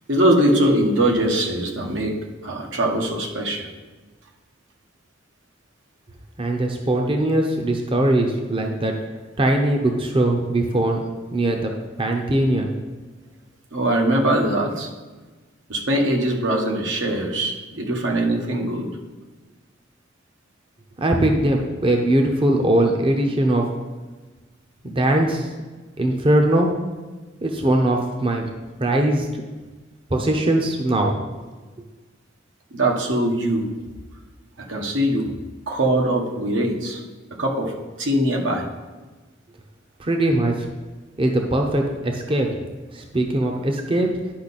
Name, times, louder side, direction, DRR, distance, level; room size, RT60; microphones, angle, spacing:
voice 1, 0.1-3.7 13.7-14.9 15.7-18.9 32.7-33.7 34.6-35.3 35.7-37.0 37.4-38.6, right 1 dB, 80° right, 1 dB, 1.3 m, -22 dB
voice 2, 6.4-8.9 9.4-11.0 11.3-11.7 12.0-12.7 21.0-23.6 24.8-25.5 26.0-26.7 27.4-28.4 28.8-29.3 30.1-31.2 40.0-40.5 41.2-42.5 42.9-44.1, right 1 dB, 30° right, 2 dB, 0.7 m, -20 dB
10.5 x 5.5 x 4.1 m, 1.3 s
head